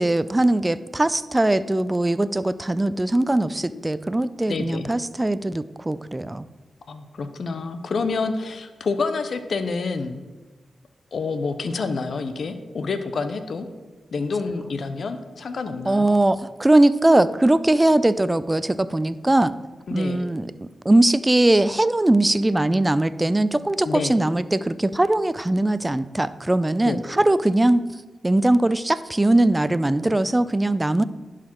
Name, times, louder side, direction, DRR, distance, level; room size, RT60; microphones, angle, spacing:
voice 1, 0.0-6.5 15.9-19.5 19.9-27.9 28.2-31.0, right 1 dB, 20° right, 15 dB, 0.4 m, -20 dB
voice 2, 4.5-4.9 6.9-10.2 11.1-13.7 14.1-16.2 19.9-20.3 23.8-24.2 26.8-27.0, left 4 dB, 70° left, 9 dB, 0.7 m, -28 dB
11.0 x 5.0 x 4.4 m, 1.2 s
supercardioid pair, 45°, 0 cm